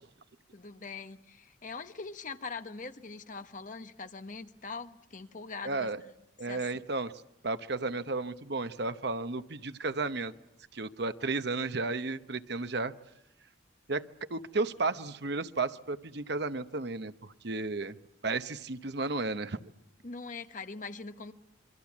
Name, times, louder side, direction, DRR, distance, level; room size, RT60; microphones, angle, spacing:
voice 1, 0.5-5.9 6.4-6.8 20.0-21.3, left 4 dB, 40° left, 8 dB, 1.2 m, -42 dB
voice 2, 5.6-6.0 6.4-7.1 7.4-10.3 10.7-12.9 13.9-14.0 14.3-18.0 18.2-19.6, right 3 dB, 60° right, 11 dB, 0.9 m, -33 dB
27.0 x 24.5 x 7.3 m, 0.86 s
head